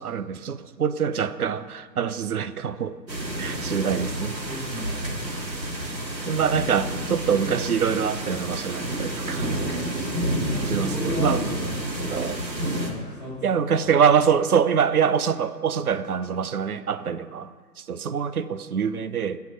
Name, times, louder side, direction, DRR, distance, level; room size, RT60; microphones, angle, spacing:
voice 1, 0.0-3.0 3.4-4.4 6.3-9.6 10.7-11.4 12.1-12.5 13.4-17.5 17.8-19.4, right 7 dB, 60° right, 13 dB, 0.7 m, -24 dB
sound 1, 3.1-12.9, right 1 dB, 85° right, 3.2 m, -29 dB
voice 2, 4.5-5.3 10.3-12.2 12.9-13.3 13.7-13.9, left 1 dB, 15° left, -7 dB, 3.6 m, -36 dB
17.0 x 5.9 x 6.2 m, 1.5 s
figure-of-eight pair, 165°, 50 cm